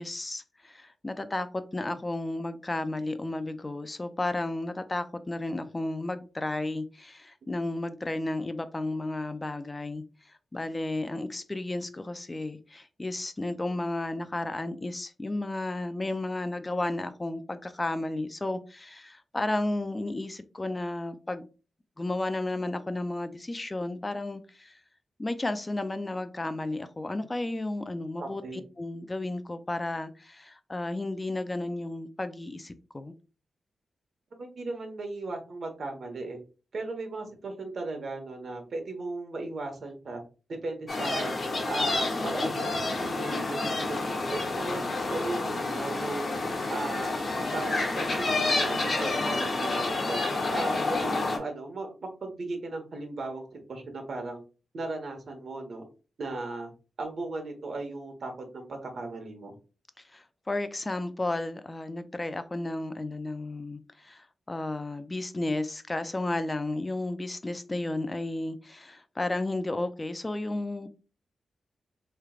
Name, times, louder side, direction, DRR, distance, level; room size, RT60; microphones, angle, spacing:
voice 1, 0.0-10.0 10.5-21.5 22.0-24.8 25.2-33.1 60.1-70.9, left 2 dB, 20° left, 0.4 m, -33 dB
voice 2, 28.2-28.6 34.4-36.4 36.7-40.2 40.5-41.3 41.7-44.8 45.1-46.4 46.7-47.2 47.5-50.2 50.5-54.4 54.7-55.8 56.2-56.7 57.0-59.5, right 2 dB, 60° right, 1.3 m, -36 dB
sound 1, 40.9-51.4, left 2 dB, 45° left, 1.4 m, -29 dB
4.6 x 3.2 x 2.4 m
wide cardioid pair, 110°, 0 cm